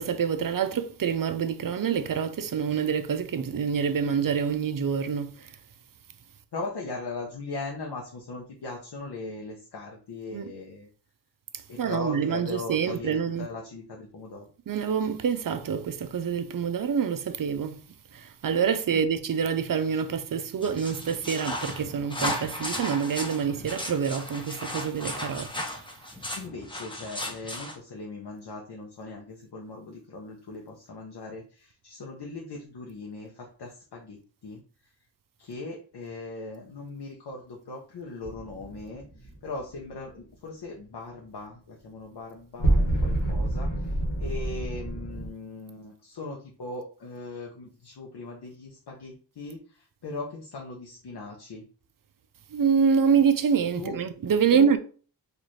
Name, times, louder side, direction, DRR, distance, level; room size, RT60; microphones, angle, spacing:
voice 1, 0.0-5.5 10.3-10.5 11.8-13.5 14.7-17.8 18.1-25.7 52.5-54.8, right 7 dB, 50° right, 0.5 m, -26 dB
voice 2, 6.5-10.9 11.7-14.5 18.9-19.1 26.3-34.2 34.4-34.6 35.4-51.6 53.8-54.0 54.5-54.8, left 3 dB, 65° left, 0.7 m, -39 dB
sound 1, 20.6-27.7, left 1 dB, 10° left, 0.6 m, -35 dB
sound 2, 38.2-39.7 42.6-45.3, right 1 dB, 90° left, 1.3 m, -27 dB
4.1 x 2.5 x 3.1 m
wide cardioid pair, 100°, 43 cm